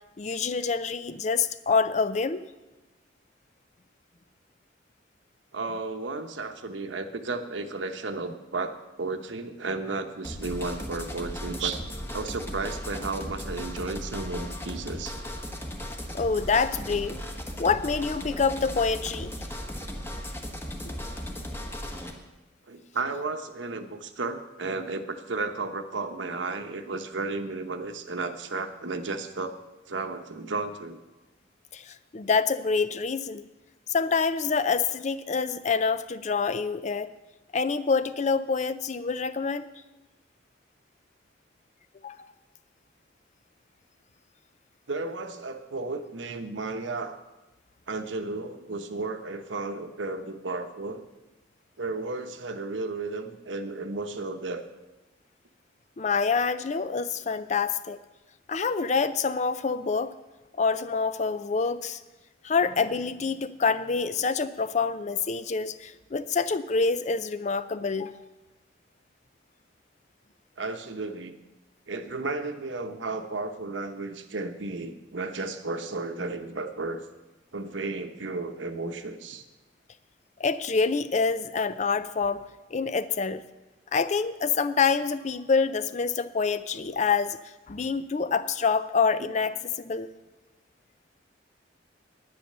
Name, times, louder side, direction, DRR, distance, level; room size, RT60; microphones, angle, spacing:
voice 1, 0.2-2.4 16.1-17.2 17.6-19.4 20.8-21.0 31.7-33.5 33.9-37.1 37.5-39.7 42.0-42.3 56.0-58.0 58.5-60.1 60.6-62.0 62.4-68.1 80.4-82.4 82.7-83.4 83.9-87.4 87.7-90.1, left 5 dB, 40° left, 14 dB, 0.5 m, -26 dB
voice 2, 5.5-11.9 12.1-15.2 22.7-29.5 29.9-31.0 44.9-47.2 47.9-51.0 51.8-54.7 70.6-71.4 71.9-77.0 77.5-79.4, right 3 dB, 80° right, 7 dB, 1.0 m, -33 dB
sound 1, 10.2-22.1, equal, 10° left, 1.2 m, -36 dB
10.5 x 9.5 x 6.7 m, 1.1 s
head